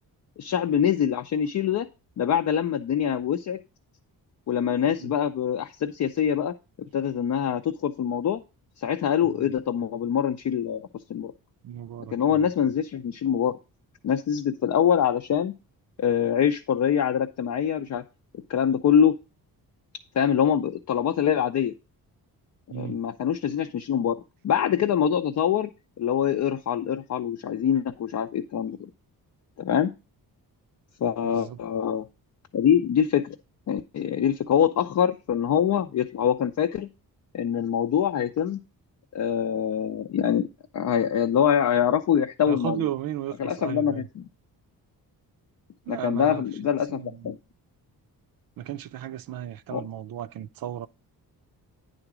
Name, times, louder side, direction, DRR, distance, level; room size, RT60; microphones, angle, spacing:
voice 1, 0.4-1.9 2.2-3.6 4.5-6.5 6.9-8.4 8.8-11.3 12.1-13.5 14.0-15.5 16.0-18.0 18.5-19.2 20.1-21.7 22.7-24.2 24.4-25.7 26.0-28.9 29.6-29.9 31.0-32.0 32.5-33.4 33.7-36.9 37.3-38.6 39.1-40.5 40.7-42.9 43.4-44.2 45.9-47.4 49.7-49.8, left 8 dB, 50° left, 0.6 m, -24 dB
voice 2, 11.6-12.5 22.7-23.0 31.2-31.6 42.5-44.1 45.9-47.3 48.6-50.9, right 12 dB, 70° right, 0.6 m, -35 dB
9.8 x 3.9 x 6.0 m
wide cardioid pair, 155°, 37 cm